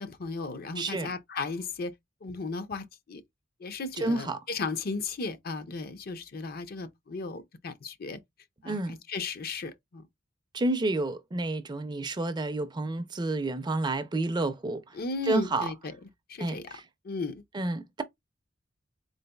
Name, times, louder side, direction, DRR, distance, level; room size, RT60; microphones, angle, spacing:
voice 1, 0.0-1.9 2.2-3.2 3.6-8.2 8.6-10.1 14.9-15.9 16.3-16.7 17.0-17.4, left 3 dB, 50° left, 0.5 m, -35 dB
voice 2, 0.8-1.1 4.0-4.4 8.6-9.0 10.5-15.0 15.3-15.7 16.4-16.8 17.5-18.0, right 2 dB, 25° right, 0.4 m, -30 dB
3.9 x 3.6 x 2.2 m
head